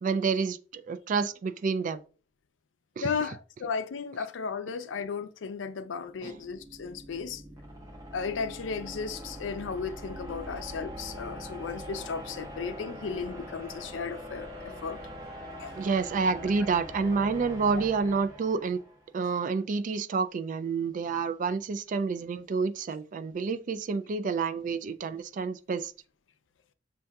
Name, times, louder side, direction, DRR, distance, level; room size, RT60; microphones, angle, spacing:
voice 1, 0.0-2.0 3.0-3.1 6.2-6.4 10.5-10.6 15.8-18.8 19.1-25.9, right 5 dB, 45° right, 0.3 m, -29 dB
voice 2, 3.0-7.4 8.1-15.0 15.6-15.8, left 5 dB, 75° left, 0.4 m, -35 dB
sound 1, 6.0-19.1, equal, 20° right, 1.0 m, -43 dB
6.5 x 2.6 x 2.2 m
head